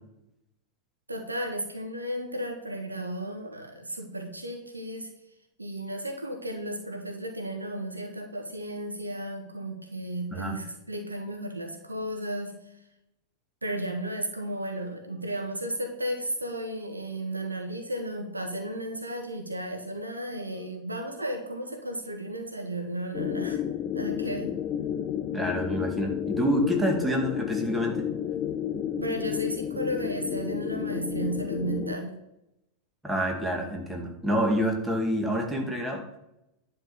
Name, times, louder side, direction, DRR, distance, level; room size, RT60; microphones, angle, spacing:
voice 1, 1.1-5.1 5.6-12.7 13.6-23.6 23.9-24.5 29.0-32.1, right 1 dB, 80° right, 4 dB, 1.6 m, -34 dB
sound 1, 23.1-32.0, left 9 dB, 35° left, 0.6 m, -31 dB
voice 2, 25.3-28.0 33.0-36.0, equal, 5° right, 1 dB, 2.3 m, -27 dB
11.0 x 4.5 x 7.1 m, 0.86 s
figure-of-eight pair, 90°, 0 cm